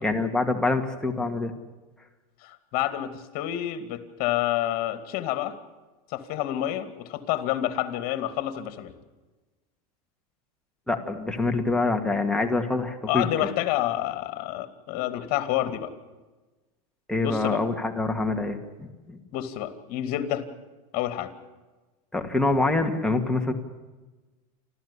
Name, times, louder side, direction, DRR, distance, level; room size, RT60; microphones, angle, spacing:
voice 1, 0.0-1.5 10.9-13.3 17.1-19.2 22.1-23.5, left 3 dB, 5° left, 2 dB, 2.2 m, -25 dB
voice 2, 2.4-5.6 6.1-8.9 13.1-15.9 17.2-17.6 19.3-20.5 20.9-21.3, left 13 dB, 50° left, 10 dB, 2.5 m, -28 dB
28.5 x 13.5 x 8.5 m, 1.2 s
supercardioid pair, 125°, 19 cm